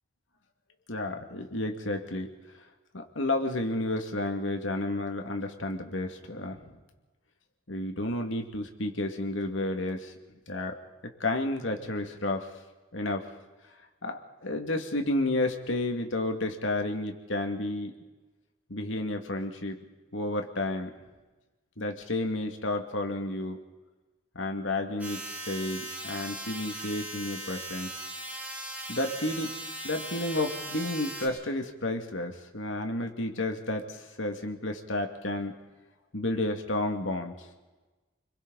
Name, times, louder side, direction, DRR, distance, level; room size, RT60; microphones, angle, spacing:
voice 1, 0.9-2.3 2.9-6.6 7.7-10.1 10.5-10.8 11.2-12.5 12.9-13.2 14.0-17.9 18.7-19.8 20.1-20.9 21.8-23.6 24.3-27.9 28.9-29.5 29.8-35.5 36.1-37.3, left 2 dB, 85° left, 4 dB, 2.4 m, -31 dB
sound 1, 25.0-31.3, right 1 dB, 10° right, 4.0 m, -39 dB
29.5 x 22.5 x 4.2 m, 1.2 s
head